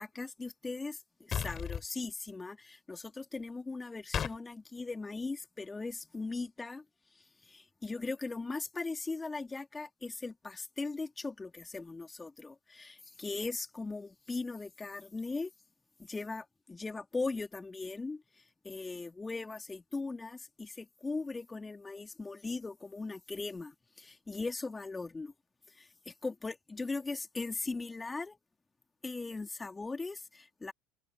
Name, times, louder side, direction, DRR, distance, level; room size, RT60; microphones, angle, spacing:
voice 1, 0.0-6.8 7.4-15.5 16.0-18.2 18.6-25.3 25.8-28.4 29.0-30.7, left 3 dB, 15° left, 3.9 m, -39 dB
sound 1, 1.3-1.9 4.1-4.4, left 8 dB, 30° left, 6.7 m, -34 dB
figure-of-eight pair, 75°, 0 cm